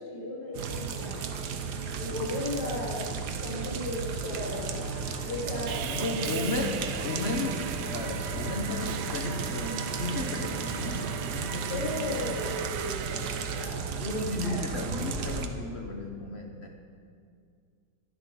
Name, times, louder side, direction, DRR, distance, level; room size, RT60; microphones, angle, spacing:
voice 1, 0.1-1.2 2.0-4.8 5.2-6.6 11.7-14.8, left 1 dB, 80° left, -5 dB, 3.6 m, -36 dB
sound 1, 0.5-15.5, right 5 dB, 60° right, 1.2 m, -34 dB
sound 2, 3.2-11.1, left 2 dB, 25° left, 3.1 m, -44 dB
Sawing, 5.7-13.6, right 10 dB, 85° right, 1.5 m, -39 dB
voice 2, 5.8-12.1 13.9-16.7, left 2 dB, 55° left, 2 dB, 0.7 m, -34 dB
12.0 x 11.5 x 5.7 m, 2.2 s
omnidirectional pair, 2.4 m